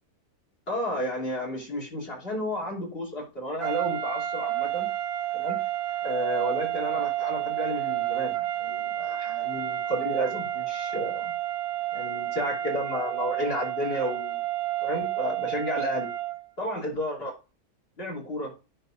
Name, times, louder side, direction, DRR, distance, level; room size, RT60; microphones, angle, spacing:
voice 1, 0.7-4.9 5.3-5.6 6.0-11.3 11.9-14.4 14.8-16.1 16.6-17.4 18.0-18.5, equal, 40° left, 3.2 m, -32 dB
sound 1, 3.6-16.5, right 13 dB, 85° right, 1.3 m, -30 dB
9.7 x 3.4 x 5.6 m
omnidirectional pair, 1.6 m